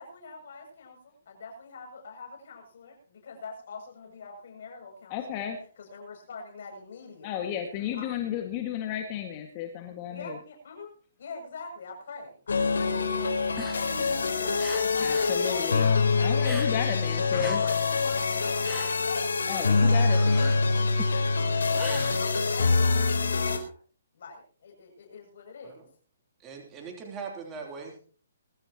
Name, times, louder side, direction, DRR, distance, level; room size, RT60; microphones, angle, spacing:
voice 1, 0.0-5.5 5.8-8.1 10.1-10.9 11.2-16.9 17.3-19.4 21.6-23.8 24.1-25.8, left 4 dB, 60° left, 3 dB, 7.1 m, -44 dB
voice 2, 5.1-5.6 7.2-10.4 15.0-15.9 16.2-17.6 19.5-20.6, left 9 dB, 30° left, 4 dB, 1.9 m, -33 dB
sound 1, 12.5-23.6, left 4 dB, 85° left, 3.5 m, -25 dB
sound 2, 13.5-15.4 15.7-17.0 17.3-22.7, right 1 dB, 5° right, 1.6 m, -43 dB
voice 3, 26.4-28.0, right 5 dB, 20° right, 1 dB, 3.1 m, -40 dB
22.0 x 13.5 x 3.0 m, 0.41 s
hypercardioid pair, 150°, 0 cm